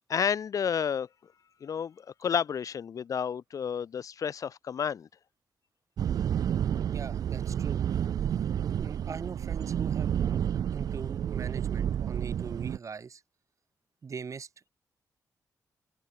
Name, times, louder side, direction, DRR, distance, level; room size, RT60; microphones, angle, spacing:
voice 1, 0.1-1.1 1.6-5.1, left 7 dB, 60° left, 0.6 m, -31 dB
sound 1, 6.0-12.8, right 9 dB, 70° right, 0.4 m, -30 dB
voice 2, 6.9-7.9 8.3-8.4 8.7-13.2 14.0-14.7, right 5 dB, 50° right, 5.0 m, -41 dB
open air
cardioid pair, 65°, 7 cm